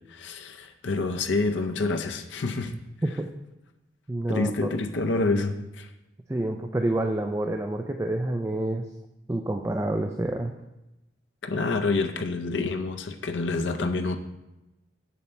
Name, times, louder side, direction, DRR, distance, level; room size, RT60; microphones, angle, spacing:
voice 1, 0.1-2.8 4.3-5.9 11.4-14.2, left 3 dB, 75° left, 7 dB, 0.6 m, -27 dB
voice 2, 4.1-4.7 6.3-8.9 9.3-10.5, right 1 dB, 15° right, 4 dB, 0.4 m, -28 dB
7.2 x 7.1 x 4.4 m, 0.96 s
head